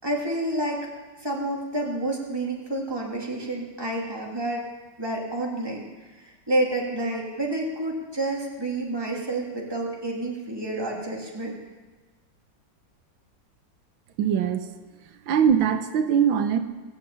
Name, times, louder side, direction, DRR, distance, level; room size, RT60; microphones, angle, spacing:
voice 1, 0.0-0.9 1.2-4.6 5.0-5.9 6.1-11.5, right 1 dB, 10° right, -2 dB, 2.9 m, -29 dB
voice 2, 14.2-14.7 15.3-16.6, right 8 dB, 85° right, 8 dB, 1.7 m, -21 dB
20.0 x 7.7 x 8.7 m, 1.3 s
omnidirectional pair, 2.1 m